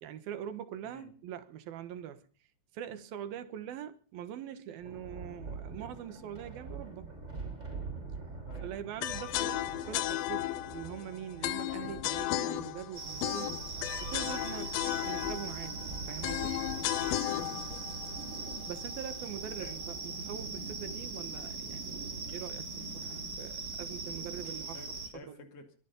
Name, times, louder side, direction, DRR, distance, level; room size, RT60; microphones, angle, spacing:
voice 1, 0.0-2.3 2.7-7.1 8.6-13.6 14.0-14.7 15.0-15.8 16.1-16.6 18.7-22.0 22.3-24.8 25.1-25.4, right 10 dB, 75° right, 3.2 m, -43 dB
Thunder, 4.8-21.0, right 4 dB, 15° right, 5.5 m, -46 dB
sound 1, 9.0-19.1, left 14 dB, 75° left, 2.6 m, -35 dB
sound 2, 13.0-25.1, right 3 dB, 35° right, 4.6 m, -40 dB
voice 2, 14.6-15.1 17.4-17.9 19.6-19.8 24.7-25.7, left 4 dB, 45° left, 3.0 m, -52 dB
23.0 x 11.0 x 5.4 m
omnidirectional pair, 4.4 m